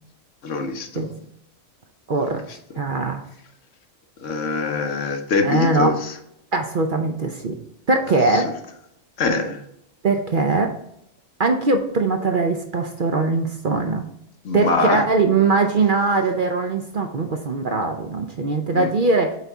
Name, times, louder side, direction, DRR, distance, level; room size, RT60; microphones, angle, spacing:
voice 1, 0.4-1.1 2.2-2.3 4.2-6.1 8.3-8.4 9.2-9.6 14.4-15.1 18.7-18.9, left 3 dB, 65° left, 5 dB, 1.2 m, -23 dB
voice 2, 2.1-2.4 2.8-3.2 5.4-5.9 6.5-7.5 7.9-8.5 10.0-10.7 11.4-14.1 14.5-19.4, right 3 dB, 50° right, 5 dB, 0.7 m, -21 dB
8.0 x 4.2 x 3.5 m, 0.76 s
omnidirectional pair, 1.4 m